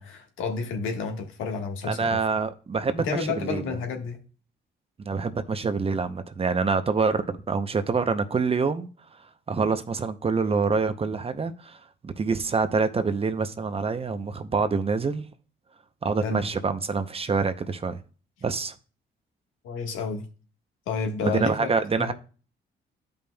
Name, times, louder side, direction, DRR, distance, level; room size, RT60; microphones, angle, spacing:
voice 1, 0.0-2.2 3.0-4.2 16.2-16.4 19.6-20.3 20.9-22.1, left 5 dB, 90° left, 1.5 m, -31 dB
voice 2, 1.9-3.8 5.1-8.9 9.5-11.8 12.0-15.2 16.0-18.0 18.4-18.7 21.2-22.1, right 4 dB, 30° right, 0.7 m, -26 dB
13.0 x 5.3 x 2.3 m
cardioid pair, 90°, 20 cm